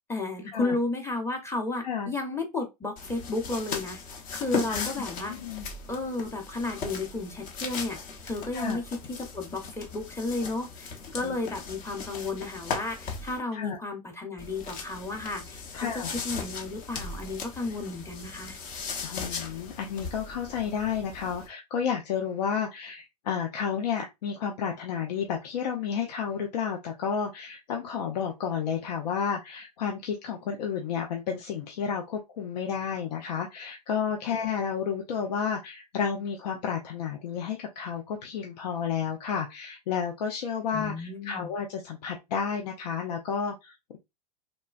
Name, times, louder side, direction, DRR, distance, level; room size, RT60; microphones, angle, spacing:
voice 1, 0.1-4.0 4.3-5.4 5.9-8.0 8.2-8.8 9.1-18.6 40.7-41.5, left 2 dB, 10° left, 0.8 m, -33 dB
voice 2, 1.8-2.1 4.7-4.9 5.3-5.7 8.5-8.8 11.2-11.4 13.5-13.8 15.7-16.1 19.0-44.0, left 7 dB, 75° left, 0.6 m, -31 dB
sound 1, 3.0-13.4 14.4-21.5, left 5 dB, 40° left, 0.9 m, -38 dB
3.2 x 2.2 x 2.4 m
hypercardioid pair, 100°, 21 cm